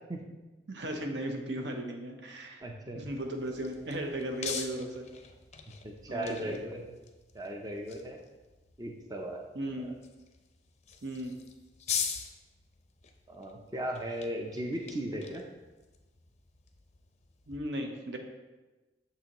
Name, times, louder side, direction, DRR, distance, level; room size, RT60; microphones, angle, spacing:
voice 1, 0.7-2.6 2.9-5.1 6.1-6.6 9.5-9.9 11.0-11.3 17.5-18.2, right 1 dB, 70° right, 4 dB, 0.8 m, -36 dB
voice 2, 2.6-3.0 5.8-6.9 7.3-8.2 8.8-9.4 9.8-9.9 13.3-15.4, right 1 dB, 20° right, 1 dB, 0.5 m, -37 dB
sound 1, 3.1-17.6, left 7 dB, 40° left, 0.5 m, -43 dB
6.9 x 5.6 x 2.9 m, 1.2 s
head